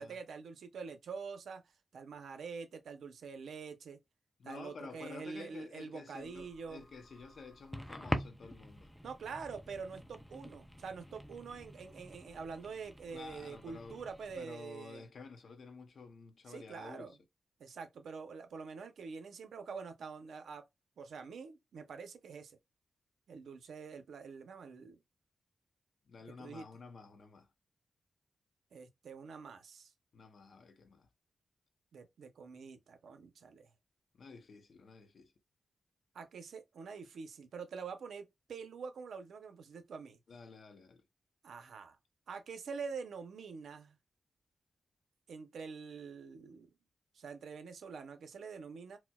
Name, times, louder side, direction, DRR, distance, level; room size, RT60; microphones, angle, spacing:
voice 1, 0.0-1.6 1.9-4.0 4.4-6.8 9.0-15.1 16.5-17.1 17.6-20.6 21.0-22.6 23.3-25.0 26.4-26.7 28.7-29.9 31.9-33.7 36.1-40.2 41.4-42.0 42.3-44.0 45.3-46.7 47.1-49.0, right 5 dB, 90° right, 0.6 m, -46 dB
voice 2, 4.4-8.9 13.1-14.0 14.3-17.2 26.1-27.5 30.1-31.1 34.1-35.3 40.3-41.0, left 4 dB, 65° left, 0.6 m, -51 dB
sound 1, 6.2-14.4, equal, 5° left, 0.4 m, -45 dB
4.3 x 2.1 x 2.2 m
cardioid pair, 90°, 0 cm